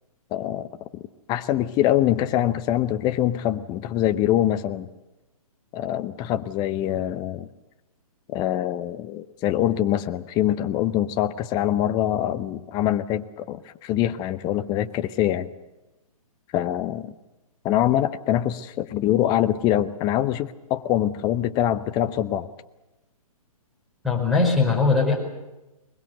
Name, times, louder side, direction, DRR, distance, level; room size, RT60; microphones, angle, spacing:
voice 1, 0.3-1.0 1.3-4.9 5.7-7.5 8.3-15.5 16.5-17.1 17.6-22.5, left 12 dB, 20° left, 10 dB, 0.8 m, -24 dB
voice 2, 24.0-25.2, left 4 dB, ahead, 1 dB, 4.6 m, -20 dB
22.5 x 21.5 x 8.0 m, 1.0 s
hypercardioid pair, 135°, 19 cm